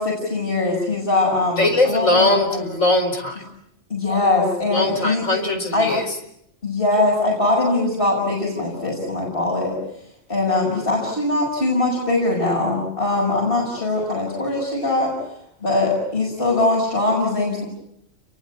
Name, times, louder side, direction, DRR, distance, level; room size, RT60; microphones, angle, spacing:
voice 1, 0.0-2.6 3.9-5.2 5.7-5.9 6.6-9.7 10.3-15.1 15.6-17.7, left 2 dB, 45° left, -4 dB, 7.7 m, -21 dB
voice 2, 1.6-3.4 4.7-6.0, left 2 dB, 90° left, 5 dB, 5.0 m, -20 dB
30.0 x 23.0 x 8.6 m, 0.77 s
omnidirectional pair, 1.3 m